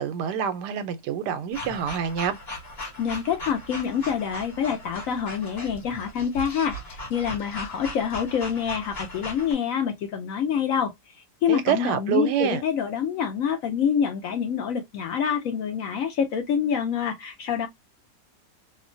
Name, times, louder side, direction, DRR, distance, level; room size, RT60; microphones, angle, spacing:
voice 1, 0.0-2.4 11.5-12.6, right 8 dB, 85° right, 1.2 m, -26 dB
sound 1, 1.5-9.5, left 1 dB, 40° left, 1.4 m, -38 dB
voice 2, 3.0-10.9 11.4-17.7, left 7 dB, 70° left, 0.8 m, -26 dB
2.9 x 2.1 x 2.4 m
omnidirectional pair, 1.8 m